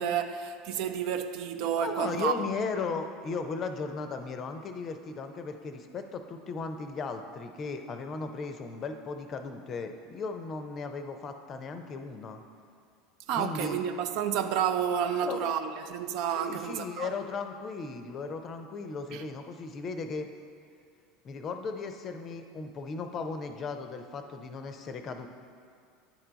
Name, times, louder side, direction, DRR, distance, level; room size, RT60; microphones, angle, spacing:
voice 1, 0.0-2.3 13.3-17.1 19.1-19.2, right 8 dB, 55° right, 0.3 m, -30 dB
voice 2, 1.7-12.4 13.3-13.8 15.2-15.5 16.4-20.3 21.2-25.3, left 4 dB, 35° left, 0.5 m, -36 dB
9.7 x 3.3 x 3.9 m
figure-of-eight pair, 75°, 0 cm